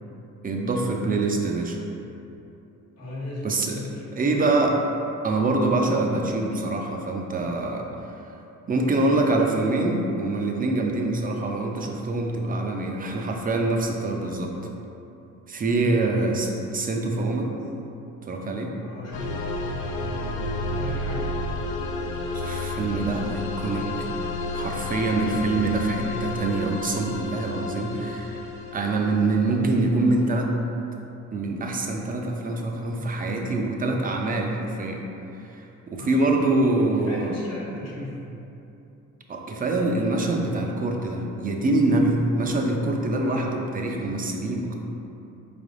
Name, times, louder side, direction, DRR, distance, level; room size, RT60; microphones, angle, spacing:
voice 1, 0.4-1.8 3.4-3.8 4.2-4.8 5.2-8.2 8.7-14.6 15.5-17.5 18.2-18.7 22.1-24.1 24.5-28.4 28.7-30.6 31.3-35.0 35.5-37.3 39.3-44.7, right 2 dB, 30° right, 1 dB, 0.5 m, -25 dB
voice 2, 3.0-4.6 15.8-16.3 18.8-21.4 25.2-26.4 36.0-38.2 43.2-43.8, left 1 dB, 55° left, -5 dB, 1.2 m, -37 dB
sound 1, 19.1-29.8, left 2 dB, 90° left, 0.5 m, -31 dB
4.5 x 3.4 x 2.5 m, 2.9 s
cardioid pair, 90°, 30 cm